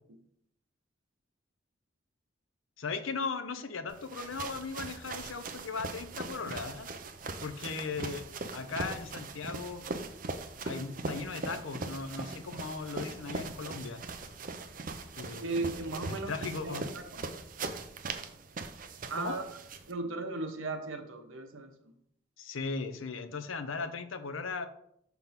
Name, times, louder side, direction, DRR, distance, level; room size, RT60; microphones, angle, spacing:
voice 1, 2.8-6.9 7.4-8.2 8.5-9.9 10.6-14.0 15.2-16.9 19.2-19.4 22.4-24.7, left 4 dB, 85° left, 10 dB, 0.7 m, -38 dB
sound 1, 3.9-19.9, right 3 dB, 45° right, 0.5 m, -40 dB
voice 2, 15.4-17.3 19.1-19.4 19.9-21.7, right 3 dB, 85° right, 5 dB, 1.0 m, -36 dB
5.9 x 3.5 x 5.7 m, 0.74 s
head